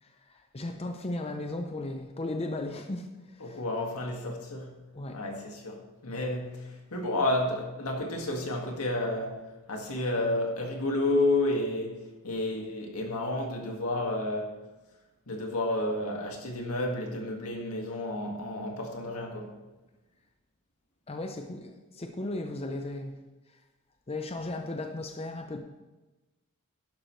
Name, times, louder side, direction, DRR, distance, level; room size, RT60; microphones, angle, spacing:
voice 1, 0.0-3.6 4.9-5.2 21.1-23.2 24.1-25.6, left 2 dB, 30° left, 0.6 m, -36 dB
voice 2, 3.4-4.7 5.1-14.5 15.3-19.5, left 2 dB, 85° left, 2.0 m, -31 dB
11.5 x 10.5 x 3.2 m
head